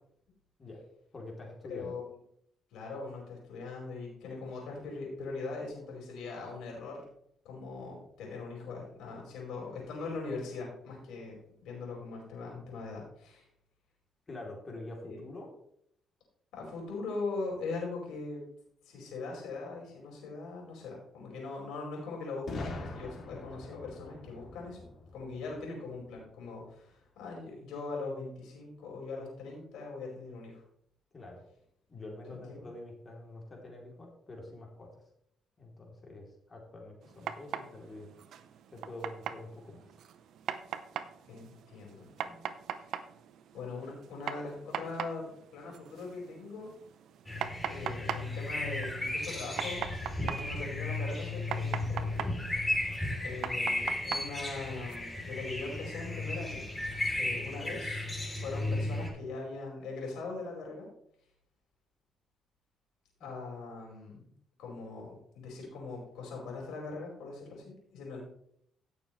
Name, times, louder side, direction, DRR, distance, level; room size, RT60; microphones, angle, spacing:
voice 1, 1.1-2.0 14.3-15.5 31.1-31.4 31.9-35.0 35.6-38.1 38.7-39.9 63.2-63.3, left 2 dB, 35° left, 0 dB, 3.1 m, -46 dB
voice 2, 1.7-2.1 2.7-7.0 7.4-11.3 11.6-13.4 15.0-15.2 16.5-18.4 18.8-24.9 25.1-30.6 32.3-32.6 41.3-42.5 42.8-42.9 43.5-45.2 45.5-46.7 47.7-49.8 50.2-52.7 53.2-56.6 57.1-58.1 58.4-60.9 63.2-64.3 64.6-68.2, left 3 dB, 85° left, -2 dB, 5.0 m, -41 dB
Boom, 22.5-26.3, left 2 dB, 55° left, 2.6 m, -43 dB
sound 1, 37.0-55.0, right 9 dB, 75° right, 0.7 m, -42 dB
sound 2, 47.3-59.1, left 2 dB, 15° left, 3.2 m, -34 dB
16.0 x 6.9 x 3.2 m, 0.70 s
cardioid pair, 90°, 0 cm